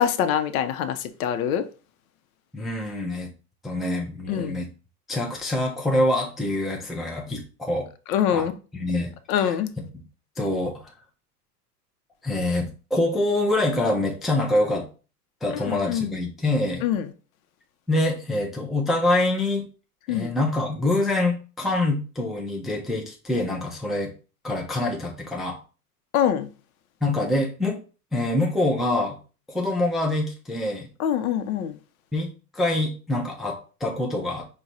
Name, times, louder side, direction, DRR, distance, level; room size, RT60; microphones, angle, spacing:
voice 1, 0.0-1.6 4.3-4.6 8.1-8.6 9.3-9.7 15.6-16.2 16.8-17.0 20.1-20.3 26.1-26.5 31.0-31.8, left 9 dB, 60° left, 0.7 m, -24 dB
voice 2, 2.5-3.3 3.6-4.7 5.1-7.9 8.3-8.5 8.7-9.1 9.4-9.8 10.4-10.9 12.2-14.9 15.4-16.8 17.9-19.6 20.1-24.1 24.4-25.6 27.0-27.8 28.1-29.2 29.5-30.9 32.1-34.4, left 2 dB, ahead, 0.4 m, -25 dB
4.6 x 2.3 x 4.0 m
hypercardioid pair, 100°, 47 cm